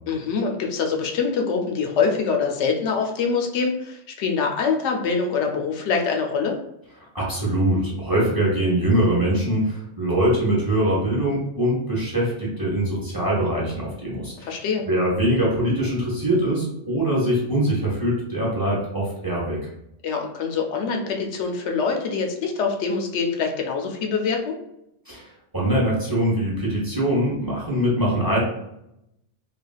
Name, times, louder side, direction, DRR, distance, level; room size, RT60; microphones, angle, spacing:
voice 1, 0.1-6.5 14.4-14.8 20.0-24.5, left 5 dB, 80° left, 2 dB, 0.9 m, -24 dB
voice 2, 7.1-14.6 14.9-19.6 25.1-25.3 25.5-28.4, right 1 dB, 20° right, -6 dB, 0.7 m, -23 dB
3.3 x 2.4 x 2.3 m, 0.81 s
omnidirectional pair, 1.2 m